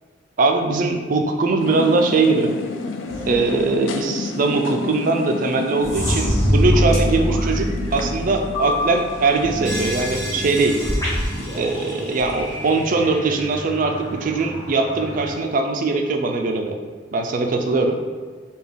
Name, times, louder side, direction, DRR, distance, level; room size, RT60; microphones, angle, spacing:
voice 1, 0.4-2.5 3.3-10.8 11.5-16.8 17.1-18.0, right 3 dB, 45° right, 4 dB, 0.3 m, -21 dB
sound 1, 1.6-12.6, left 4 dB, 80° left, 0.3 m, -32 dB
sound 2, 3.1-4.0 4.5-4.6 5.1-5.2 5.8-15.3, equal, 20° left, 1.1 m, -25 dB
3.6 x 2.3 x 3.4 m, 1.5 s
head